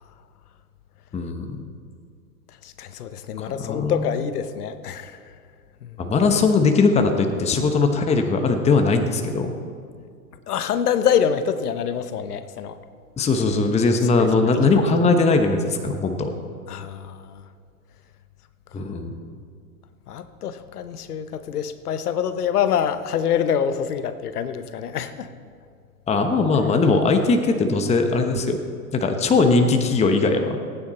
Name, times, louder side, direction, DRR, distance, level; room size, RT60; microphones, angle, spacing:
voice 1, 1.1-1.6 3.4-4.0 6.0-9.5 13.2-16.3 18.7-19.1 26.1-28.6 28.9-30.6, left 3 dB, 15° left, 5 dB, 0.9 m, -20 dB
voice 2, 2.6-5.2 5.8-6.1 10.5-12.8 14.2-14.3 16.7-17.4 20.1-25.3, left 8 dB, 80° left, 12 dB, 1.0 m, -25 dB
19.0 x 9.2 x 4.3 m, 2.2 s
hypercardioid pair, 110°, 45 cm